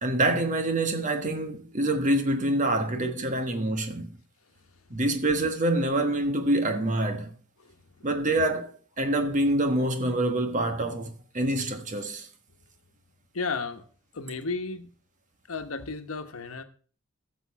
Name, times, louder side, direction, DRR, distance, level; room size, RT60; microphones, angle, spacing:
voice 1, 0.0-4.1 4.9-7.3 8.0-12.3, right 1 dB, 35° right, 1.3 m, -26 dB
voice 2, 7.6-8.1 13.3-13.8 14.1-14.9 15.5-16.6, left 4 dB, 80° left, 1.1 m, -34 dB
15.0 x 6.8 x 4.7 m
head